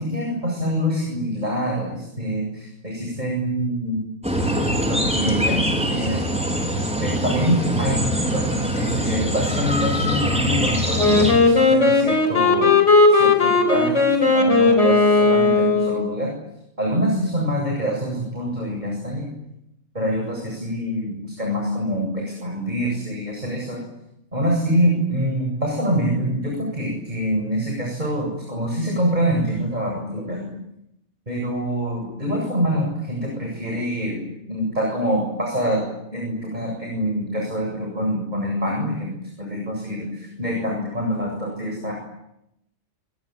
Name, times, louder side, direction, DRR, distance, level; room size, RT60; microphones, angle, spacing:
voice 1, 0.0-4.0 4.9-6.2 7.0-12.7 13.1-16.3 16.8-19.3 19.9-23.8 24.3-30.5 31.3-34.2 34.5-35.8 36.1-39.1 39.4-41.9, equal, 35° right, 0 dB, 8.1 m, -25 dB
sound 1, 4.2-11.3, equal, 5° right, 5.2 m, -23 dB
Wind instrument woodwind instrument, 11.0-16.2, left 3 dB, 75° left, 5.2 m, -16 dB
28.0 x 22.0 x 9.7 m, 0.83 s
omnidirectional pair, 1.2 m